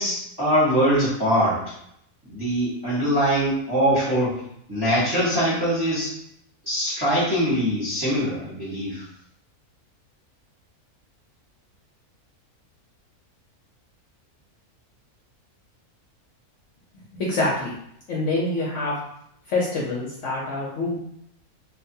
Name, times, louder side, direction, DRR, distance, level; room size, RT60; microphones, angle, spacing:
voice 1, 0.0-1.7 2.3-4.4 4.7-6.1 6.7-9.0, equal, 20° right, -9 dB, 0.8 m, -22 dB
voice 2, 17.1-17.7 18.1-19.0 19.5-21.0, left 2 dB, 65° left, -5 dB, 0.8 m, -26 dB
2.6 x 2.2 x 2.6 m, 0.73 s
omnidirectional pair, 1.6 m